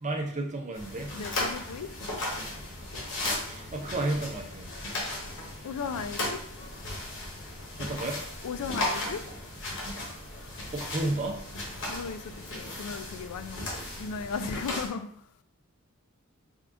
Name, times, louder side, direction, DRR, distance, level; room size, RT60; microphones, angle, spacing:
voice 1, 0.0-1.1 3.5-4.7 7.8-8.2 10.7-11.4, right 2 dB, 35° right, 2 dB, 0.6 m, -32 dB
sound 1, 0.7-14.9, left 1 dB, 60° left, 1.0 m, -36 dB
voice 2, 1.1-1.9 5.6-6.4 8.4-9.3 11.8-13.7 14.0-15.1, left 5 dB, 80° left, 10 dB, 0.3 m, -36 dB
3.5 x 2.4 x 3.6 m, 0.64 s
head